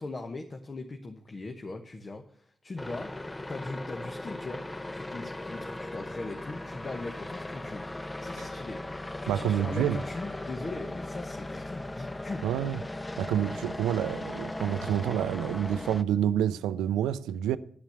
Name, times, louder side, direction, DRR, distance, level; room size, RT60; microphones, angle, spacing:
voice 1, 0.0-7.9 8.2-12.5, left 2 dB, 45° left, 1.2 m, -40 dB
sound 1, 2.8-16.0, left 1 dB, 20° left, 0.6 m, -38 dB
voice 2, 9.3-10.0 12.4-12.8 13.2-17.6, right 10 dB, 90° right, 0.4 m, -28 dB
10.5 x 5.8 x 8.0 m
supercardioid pair, 40°, 0 cm